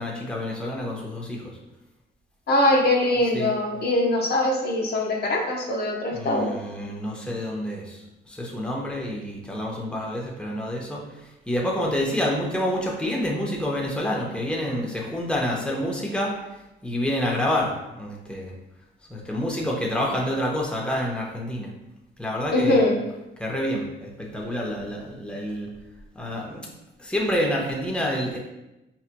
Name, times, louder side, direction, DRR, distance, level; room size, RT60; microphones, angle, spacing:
voice 1, 0.0-1.6 3.3-3.5 6.1-11.0 11.5-16.3 16.8-18.5 19.1-21.7 22.2-22.8 23.4-25.7 26.1-26.7 27.0-28.4, left 1 dB, 5° left, -2 dB, 0.8 m, -28 dB
voice 2, 2.5-6.5 22.5-23.0, left 1 dB, 55° left, 0 dB, 0.7 m, -22 dB
4.7 x 2.9 x 2.2 m, 0.95 s
cardioid pair, 90°, 20 cm